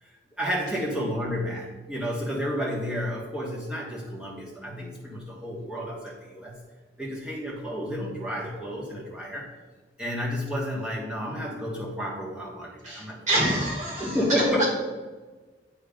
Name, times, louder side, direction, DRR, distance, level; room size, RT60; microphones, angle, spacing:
voice 1, 0.4-6.6 7.0-9.5 10.0-13.2 14.0-14.7, equal, 5° right, -4 dB, 1.3 m, -31 dB
voice 2, 12.8-14.2 14.6-14.7, right 1 dB, 40° right, -4 dB, 2.3 m, -26 dB
8.8 x 3.3 x 5.0 m, 1.3 s
head